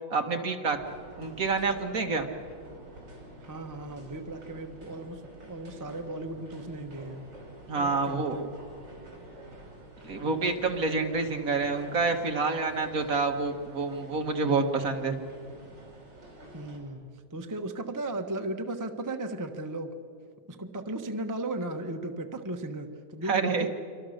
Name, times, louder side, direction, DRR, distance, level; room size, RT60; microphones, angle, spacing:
voice 1, 0.1-0.8 1.2-2.3 7.7-8.5 10.0-15.1 23.3-23.7, right 4 dB, 50° right, 5 dB, 1.7 m, -28 dB
sound 1, 0.7-16.8, right 1 dB, 65° right, 5.7 m, -49 dB
voice 2, 3.4-7.2 7.8-8.5 16.5-19.9 20.5-23.7, right 2 dB, 15° right, 5 dB, 0.9 m, -36 dB
28.0 x 24.5 x 6.5 m, 2.3 s
omnidirectional pair, 2.0 m